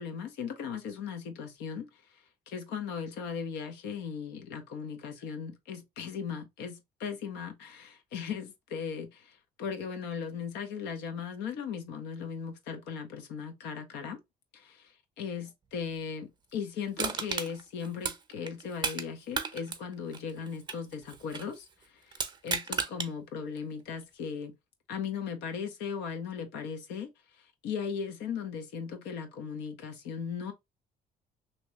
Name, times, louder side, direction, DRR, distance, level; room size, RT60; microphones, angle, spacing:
voice 1, 0.0-1.9 2.5-14.2 14.5-21.7 21.9-24.5 24.9-27.1 27.6-30.5, left 6 dB, 90° left, 0.8 m, -38 dB
Crushing, 17.0-19.1 19.3-21.5 22.1-23.1 23.6-23.7, right 5 dB, 25° right, 0.6 m, -34 dB
2.9 x 2.8 x 3.0 m
cardioid pair, 110°, 17 cm